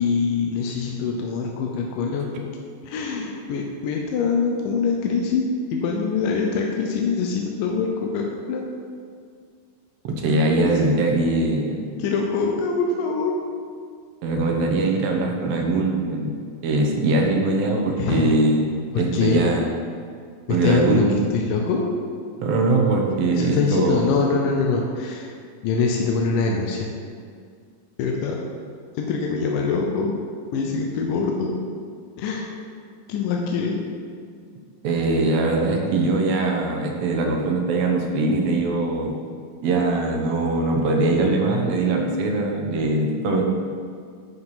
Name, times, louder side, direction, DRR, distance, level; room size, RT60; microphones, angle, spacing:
voice 1, 0.0-2.5 2.8-8.6 10.3-10.9 12.0-13.3 18.0-18.3 18.9-19.4 20.5-21.9 23.4-25.3 25.6-26.9 28.0-28.4 29.0-30.1 30.5-31.5 32.2-32.5 33.1-33.8, left 4 dB, 80° left, 0 dB, 2.3 m, -24 dB
voice 2, 10.0-11.9 14.2-16.3 16.6-19.7 20.5-21.0 22.4-24.1 34.8-39.1 39.6-43.4, right 2 dB, 65° right, 1 dB, 1.6 m, -21 dB
9.6 x 4.8 x 5.6 m, 2.2 s
omnidirectional pair, 3.9 m